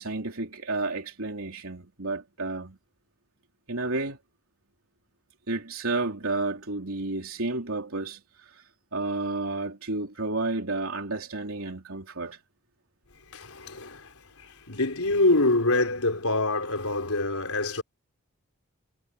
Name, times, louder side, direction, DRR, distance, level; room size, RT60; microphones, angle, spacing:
voice 1, 0.0-2.8 3.7-4.2 5.5-8.6 8.9-12.4, right 2 dB, 75° right, 3.2 m, -31 dB
voice 2, 13.3-17.8, left 2 dB, 90° left, 4.3 m, -26 dB
head